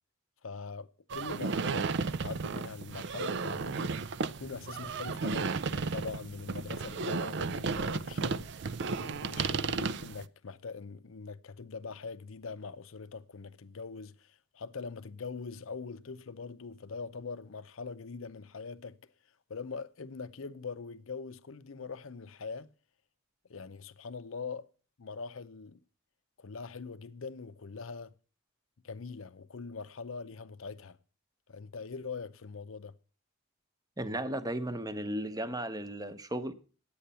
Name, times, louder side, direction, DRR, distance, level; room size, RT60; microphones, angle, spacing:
voice 1, 0.4-1.9 2.2-8.5 9.0-19.0 19.5-22.7 23.5-24.7 25.0-25.8 26.4-28.1 28.8-31.0 31.5-32.9, left 4 dB, 70° left, 0.7 m, -42 dB
sound 1, 1.1-10.2, right 4 dB, 60° right, 0.5 m, -34 dB
voice 2, 34.0-36.5, right 1 dB, 20° right, 0.9 m, -35 dB
10.0 x 8.6 x 6.8 m
head